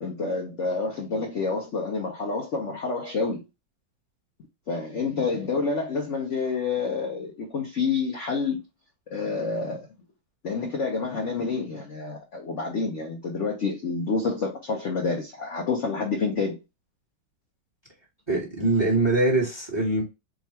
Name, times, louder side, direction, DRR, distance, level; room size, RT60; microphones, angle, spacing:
voice 1, 0.0-3.4 4.7-8.6 9.1-9.9 10.4-16.6, left 4 dB, 55° left, 0.8 m, -28 dB
voice 2, 18.3-20.0, right 2 dB, 15° right, 1.3 m, -23 dB
3.8 x 2.4 x 4.3 m
omnidirectional pair, 2.2 m